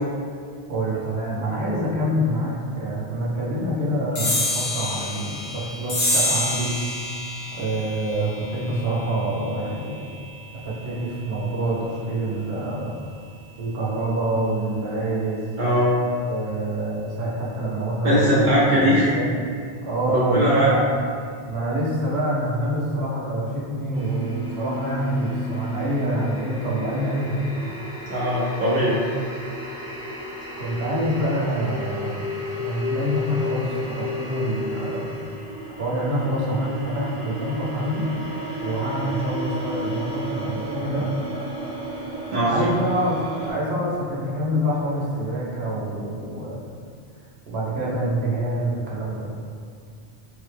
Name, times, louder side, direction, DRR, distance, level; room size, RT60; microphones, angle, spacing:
voice 1, 0.7-6.7 7.6-10.0 10.6-12.9 13.6-15.5 16.3-19.4 19.8-20.8 21.5-27.5 30.6-32.2 32.6-35.1 35.7-38.1 38.6-41.1 42.5-46.8 47.5-49.3, right 1 dB, 80° right, -5 dB, 1.0 m, -26 dB
sound 1, 4.1-11.0, left 1 dB, 50° left, 0.7 m, -28 dB
voice 2, 15.6-15.9 18.0-19.1 20.1-20.7 28.1-29.0 42.3-42.7, equal, 55° right, -8 dB, 0.7 m, -19 dB
sound 2, 23.9-43.5, left 1 dB, 25° right, 0.8 m, -33 dB
3.4 x 2.1 x 3.2 m, 2.2 s
omnidirectional pair, 1.1 m